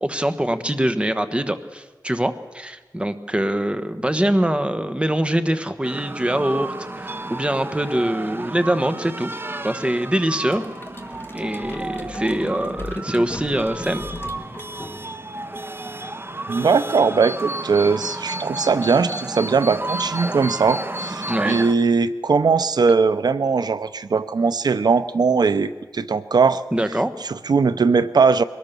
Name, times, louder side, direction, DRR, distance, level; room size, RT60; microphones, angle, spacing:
voice 1, 0.0-9.3 9.6-10.6 11.3-14.0 21.3-21.6 26.7-27.1, right 1 dB, 15° right, 10 dB, 1.3 m, -23 dB
sound 1, 5.8-21.7, right 2 dB, 30° right, 0.9 m, -32 dB
sound 2, 10.5-15.3, left 2 dB, 30° left, 2.0 m, -37 dB
voice 2, 16.5-26.6 27.2-28.4, right 5 dB, 85° right, 14 dB, 0.6 m, -19 dB
23.0 x 19.5 x 6.9 m, 1.2 s
wide cardioid pair, 85°, 7 cm